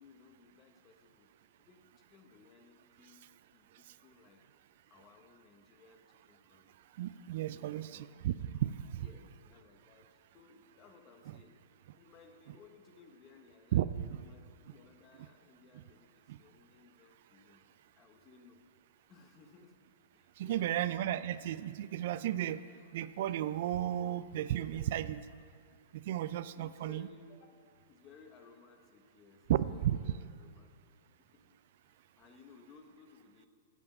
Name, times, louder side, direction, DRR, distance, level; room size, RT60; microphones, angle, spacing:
voice 1, 0.0-1.3 1.6-3.2 3.5-4.4 4.9-6.7 7.5-8.6 8.9-11.6 11.9-17.6 18.0-18.6 19.1-19.7 20.1-21.5 26.5-27.6 27.9-30.9 31.2-31.6 31.8-33.5, left 4 dB, 30° left, 5 dB, 1.0 m, -60 dB
voice 2, 7.0-8.3 8.6-9.1 13.7-14.2 16.3-16.4 20.4-22.6 22.9-25.2 25.9-27.1 29.5-30.0, right 12 dB, 60° right, 15 dB, 0.3 m, -34 dB
8.0 x 7.0 x 5.4 m, 2.1 s
hypercardioid pair, 135°, 0 cm